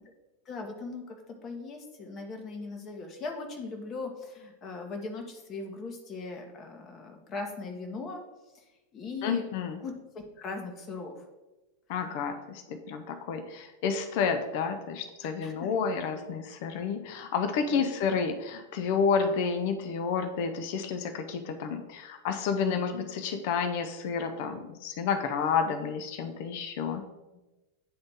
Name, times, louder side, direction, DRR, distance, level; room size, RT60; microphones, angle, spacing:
voice 1, 0.5-8.2 8.9-9.4 9.8-11.2 12.0-12.2 15.4-15.7 17.7-17.9 22.6-22.9, left 3 dB, 30° left, 3 dB, 1.0 m, -39 dB
voice 2, 9.2-9.8 11.9-27.0, left 6 dB, 50° left, 7 dB, 0.6 m, -30 dB
9.5 x 3.9 x 3.5 m, 1.1 s
figure-of-eight pair, 90°, 0 cm